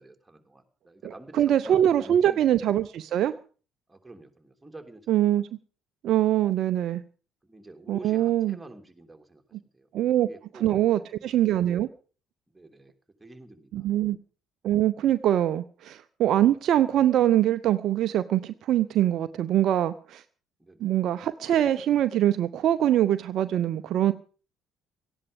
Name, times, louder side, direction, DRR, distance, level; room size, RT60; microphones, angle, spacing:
voice 1, 0.0-2.7 3.9-5.4 7.4-9.4 9.7-9.9 10.2-11.2 12.5-12.9 13.2-13.9 20.6-21.0, right 2 dB, 10° right, 4 dB, 3.2 m, -48 dB
voice 2, 1.0-3.3 5.1-5.5 6.0-7.0 7.9-8.6 9.9-10.3 10.6-11.9 13.7-14.2 14.6-20.2 20.8-24.1, right 12 dB, 55° right, 12 dB, 0.7 m, -23 dB
17.5 x 14.0 x 5.2 m, 0.39 s
figure-of-eight pair, 50°, 0 cm